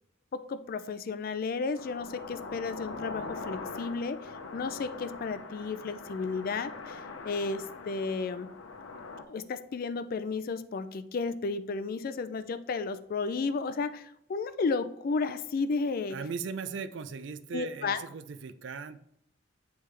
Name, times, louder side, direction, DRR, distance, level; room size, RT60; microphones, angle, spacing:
voice 1, 0.3-8.5 9.3-16.2 17.5-18.0, left 4 dB, 45° left, 12 dB, 0.3 m, -33 dB
sound 1, 1.8-9.2, left 3 dB, 90° left, 0.7 m, -42 dB
voice 2, 16.1-19.0, right 5 dB, 65° right, 10 dB, 0.4 m, -38 dB
9.0 x 3.4 x 3.2 m, 0.73 s
head